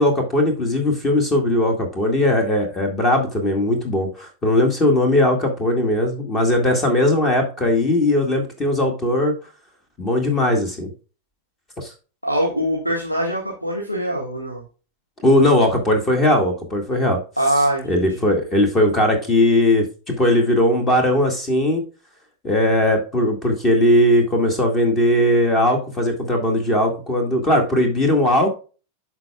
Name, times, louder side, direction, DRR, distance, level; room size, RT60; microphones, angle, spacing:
voice 1, 0.0-9.3 10.0-10.9 11.8-11.9 15.2-17.2 17.9-21.8 22.4-28.5, left 1 dB, 25° left, 4 dB, 1.8 m, -19 dB
voice 2, 12.2-14.6 17.4-18.2, right 1 dB, 90° left, -1 dB, 1.6 m, -23 dB
12.5 x 4.7 x 2.3 m, 0.35 s
figure-of-eight pair, 90°, 0 cm